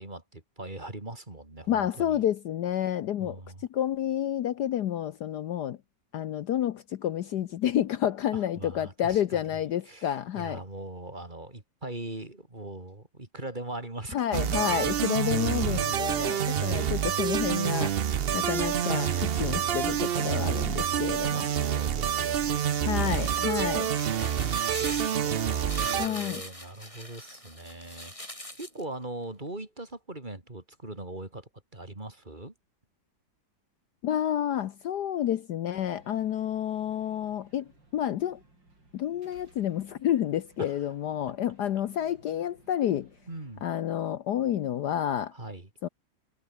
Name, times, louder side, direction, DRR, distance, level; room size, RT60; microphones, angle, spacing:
voice 1, 0.0-2.2 3.2-3.6 8.3-9.4 9.9-14.8 17.1-17.2 20.9-28.3 28.6-32.5 40.6-40.8 43.3-43.6 45.3-45.7, right 2 dB, 25° right, 3.4 m, -41 dB
voice 2, 1.7-3.4 3.7-5.8 6.1-10.6 14.1-21.5 22.8-23.9 26.0-26.4 34.0-38.4 38.9-43.1 43.6-45.3 45.8-45.9, left 10 dB, 65° left, 1.3 m, -29 dB
sound 1, 14.3-26.1, right 9 dB, 90° right, 0.5 m, -27 dB
sound 2, 22.7-28.8, left 1 dB, 15° left, 6.8 m, -42 dB
sound 3, 35.7-43.6, right 2 dB, 70° right, 8.1 m, -60 dB
omnidirectional pair, 2.1 m